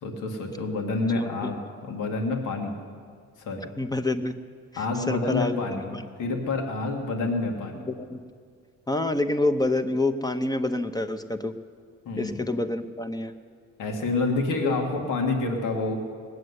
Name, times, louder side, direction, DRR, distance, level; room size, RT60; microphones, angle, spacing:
voice 1, 0.0-2.8 3.4-3.7 4.8-7.9 12.1-12.4 13.8-16.0, left 3 dB, 85° left, 2 dB, 1.9 m, -28 dB
voice 2, 1.1-1.5 3.8-4.3 4.7-5.7 5.9-6.0 8.1-8.2 8.9-11.5 12.2-13.3 14.6-14.7, left 2 dB, 15° left, 8 dB, 0.9 m, -27 dB
19.0 x 7.8 x 9.6 m, 2.1 s
cardioid pair, 90°, 30 cm